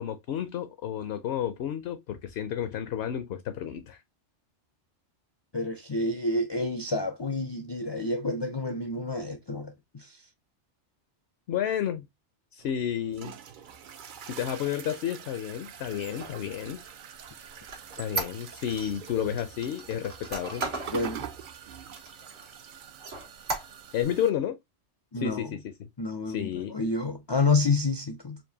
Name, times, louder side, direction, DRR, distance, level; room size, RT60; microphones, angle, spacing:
voice 1, 0.0-4.0 11.5-12.1 12.5-13.3 14.3-16.8 18.0-20.6 23.9-24.6 25.1-25.5 25.8-25.9 26.3-26.7, left 9 dB, 65° left, 0.8 m, -31 dB
voice 2, 5.5-10.2 20.9-21.2 25.1-25.6 26.0-28.4, left 3 dB, 40° left, 0.4 m, -29 dB
sound 1, 12.6-24.3, right 8 dB, 55° right, 0.6 m, -45 dB
Squeak, 15.9-18.9 19.4-21.0 21.4-21.5 21.9-22.6 23.0-24.0, right 3 dB, 85° right, 1.5 m, -36 dB
4.5 x 2.5 x 2.7 m
omnidirectional pair, 1.2 m